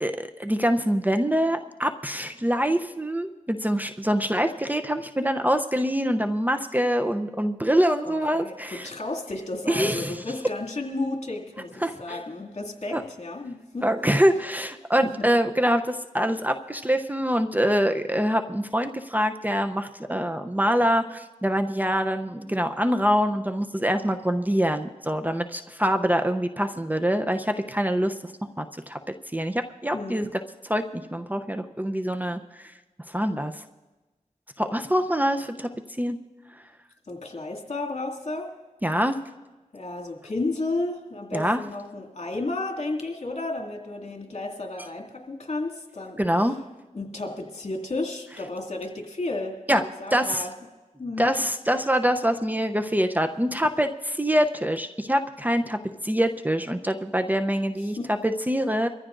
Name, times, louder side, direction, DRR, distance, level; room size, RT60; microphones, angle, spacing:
voice 1, 0.0-8.9 9.7-10.2 11.8-12.2 12.9-13.0 13.8-28.3 28.6-29.0 29.3-32.7 33.1-33.6 34.6-35.7 36.0-36.2 38.8-39.2 41.3-41.6 46.2-46.5 49.7-49.8 50.1-50.5 51.2-58.0 58.2-58.9, equal, 10° right, 6 dB, 0.7 m, -25 dB
voice 2, 8.0-13.8 15.0-15.1 29.9-30.2 37.1-38.5 39.7-46.6 46.9-50.5 51.0-51.3 57.8-58.1, left 2 dB, 55° left, 1 dB, 2.3 m, -33 dB
24.0 x 14.5 x 2.6 m, 1.2 s
cardioid pair, 50°, 14 cm